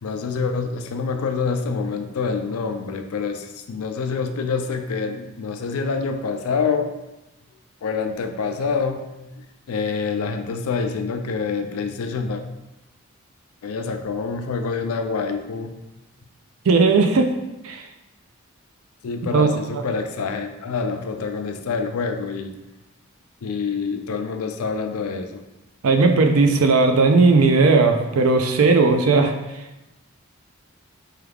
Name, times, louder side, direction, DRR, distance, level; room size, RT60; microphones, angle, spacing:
voice 1, 0.0-6.9 7.8-9.1 9.4-12.4 13.6-15.7 19.0-22.6 23.4-25.4, left 5 dB, 90° left, 7 dB, 0.4 m, -26 dB
voice 2, 16.7-17.3 17.6-17.8 19.3-19.5 25.8-29.3, right 3 dB, 85° right, 5 dB, 0.5 m, -16 dB
4.7 x 2.3 x 3.4 m, 0.99 s
head